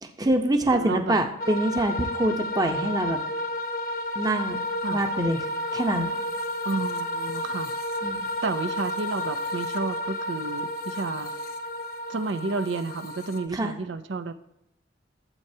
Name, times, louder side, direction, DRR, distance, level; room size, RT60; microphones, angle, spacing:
voice 1, 0.0-3.2 4.1-4.6 4.9-5.4 5.7-6.1 8.0-8.2 13.5-13.7, right 1 dB, 20° right, 5 dB, 0.8 m, -25 dB
voice 2, 0.7-1.2 4.8-5.0 6.6-7.7 8.4-11.3 12.1-14.3, right 3 dB, 85° right, 10 dB, 0.6 m, -31 dB
sound 1, 1.4-13.5, left 1 dB, 55° left, 0.8 m, -31 dB
13.0 x 7.7 x 2.8 m, 0.83 s
head